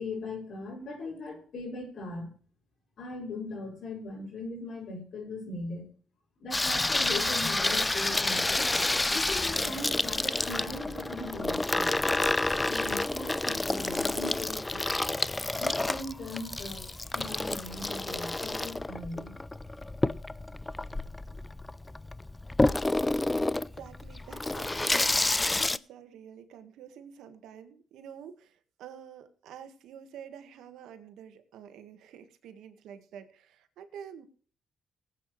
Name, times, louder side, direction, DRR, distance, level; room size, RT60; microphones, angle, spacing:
voice 1, 0.0-2.3 3.0-5.8 6.4-8.8 9.1-11.9 12.4-15.0 15.6-19.6, left 2 dB, 70° left, -4 dB, 5.6 m, -39 dB
Water tap faucet / Sink (filling or washing), 6.5-25.8, left 2 dB, 15° left, 0.5 m, -29 dB
voice 2, 23.5-34.3, right 8 dB, 85° right, 8 dB, 1.7 m, -48 dB
19.0 x 8.6 x 3.3 m, 0.42 s
cardioid pair, 75°, 0 cm